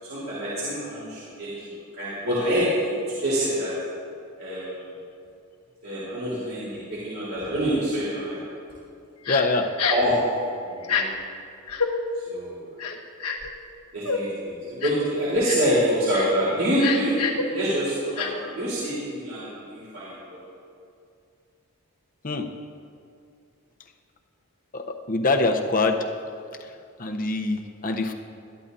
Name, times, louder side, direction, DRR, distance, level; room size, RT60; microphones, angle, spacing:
voice 1, 0.0-3.7 4.4-4.8 5.8-8.4 9.9-10.2 10.6-11.1 12.3-12.7 13.9-20.4, equal, 65° right, -9 dB, 3.9 m, -26 dB
Crying sobbing, 9.3-9.4 9.8-10.1 10.8-11.0 11.7-11.9 12.8-13.5 14.0-14.2 14.8-15.1 15.4-15.7 16.1-16.3 16.8-17.4 18.2-18.3, left 6 dB, 85° left, 1.3 m, -26 dB
voice 2, 9.3-9.7 22.2-22.5 24.7-26.0 27.0-28.1, left 3 dB, 40° left, 4 dB, 0.9 m, -24 dB
21.0 x 13.0 x 2.7 m, 2.4 s
head